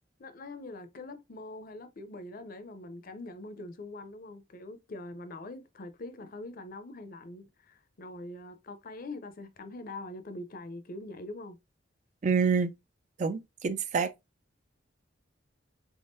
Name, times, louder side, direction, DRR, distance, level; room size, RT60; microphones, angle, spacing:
voice 1, 0.2-11.6, left 2 dB, 50° left, 0.6 m, -43 dB
voice 2, 12.2-12.7 13.2-14.1, right 5 dB, 40° right, 0.4 m, -27 dB
3.6 x 3.4 x 2.6 m
head